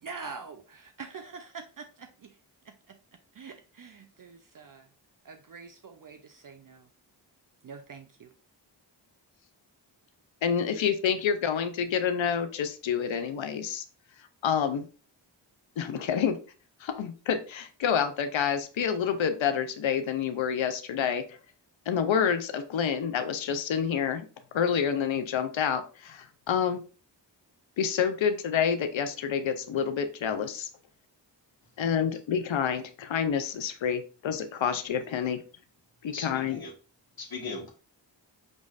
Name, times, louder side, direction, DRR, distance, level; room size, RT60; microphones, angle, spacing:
voice 1, 0.0-2.4 2.6-3.0 3.3-4.9 5.2-6.9 7.6-8.3, right 5 dB, 45° right, 7 dB, 0.5 m, -45 dB
voice 2, 10.4-13.8 14.4-14.9 15.8-16.4 16.8-21.2 21.9-24.2 24.5-26.8 27.8-30.7 31.8-35.4 36.0-36.6, left 7 dB, 85° left, 9 dB, 0.6 m, -28 dB
voice 3, 36.1-36.7 37.2-37.7, left 4 dB, 55° left, 3 dB, 1.1 m, -38 dB
5.3 x 3.1 x 2.4 m, 0.36 s
cardioid pair, 40°, 45 cm